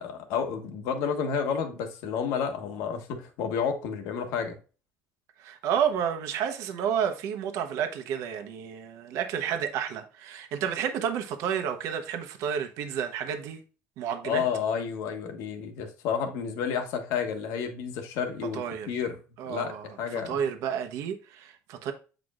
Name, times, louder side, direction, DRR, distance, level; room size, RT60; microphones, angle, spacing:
voice 1, 0.0-4.6 14.2-19.2 19.5-20.4, left 7 dB, 75° left, 1.3 m, -31 dB
voice 2, 5.4-13.6 14.0-14.4 18.5-19.0 19.4-21.9, right 8 dB, 65° right, 0.9 m, -31 dB
8.0 x 5.1 x 2.4 m
cardioid pair, 140°, 6 cm